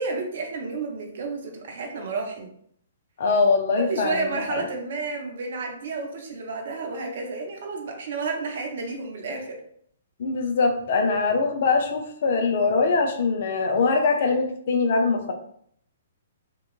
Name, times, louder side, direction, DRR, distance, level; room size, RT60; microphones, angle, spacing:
voice 1, 0.0-2.5 3.8-9.6, right 3 dB, 60° right, 2 dB, 0.7 m, -31 dB
voice 2, 3.2-4.6 10.2-15.3, left 4 dB, 55° left, 4 dB, 0.5 m, -22 dB
2.9 x 2.2 x 2.4 m, 0.65 s
figure-of-eight pair, 125°, 0 cm